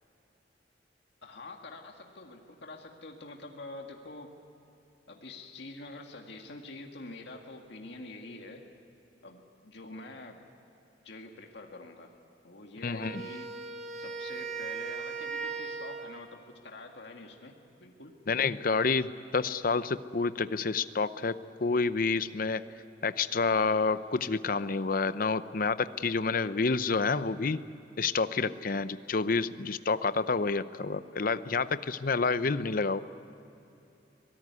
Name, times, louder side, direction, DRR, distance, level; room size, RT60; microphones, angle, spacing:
voice 1, 1.2-4.3 5.1-8.6 9.2-10.4 11.0-12.2 12.4-13.5 13.9-17.5 17.8-18.2, left 2 dB, 65° left, 2 dB, 2.0 m, -46 dB
voice 2, 12.8-13.2 18.3-22.6 23.0-27.6 28.0-33.0, left 4 dB, 50° left, 13 dB, 0.7 m, -29 dB
Wind instrument woodwind instrument, 13.0-16.4, right 5 dB, 40° right, 1.5 m, -38 dB
24.5 x 18.5 x 9.6 m, 2.9 s
head